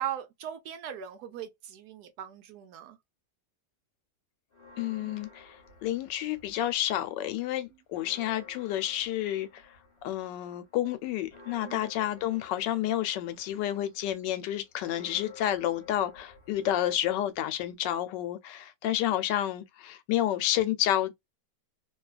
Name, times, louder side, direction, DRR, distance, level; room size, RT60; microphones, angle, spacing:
voice 1, 0.0-3.0 5.0-5.2 11.6-11.8, right 10 dB, 75° right, 1.0 m, -39 dB
Church bell, 4.5-6.9 7.2-7.3 7.7-17.7, left 4 dB, 35° left, 1.3 m, -54 dB
voice 2, 4.8-9.6 10.0-21.1, left 12 dB, 85° left, 1.2 m, -30 dB
3.0 x 2.2 x 2.3 m
omnidirectional pair, 1.9 m